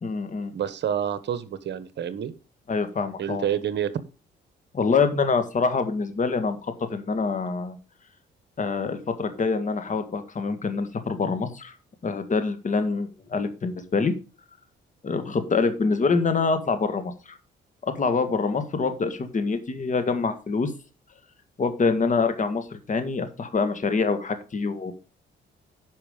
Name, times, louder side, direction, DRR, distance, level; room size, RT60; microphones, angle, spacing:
voice 1, 0.0-0.5 2.7-3.5 4.7-7.8 8.6-11.8 12.0-14.1 15.0-17.4 17.8-20.7 21.6-24.9, left 4 dB, 40° left, 9 dB, 1.9 m, -25 dB
voice 2, 0.5-2.3 3.2-3.9, right 9 dB, 60° right, 14 dB, 1.2 m, -28 dB
10.5 x 5.7 x 5.2 m, 0.32 s
cardioid pair, 90°, 20 cm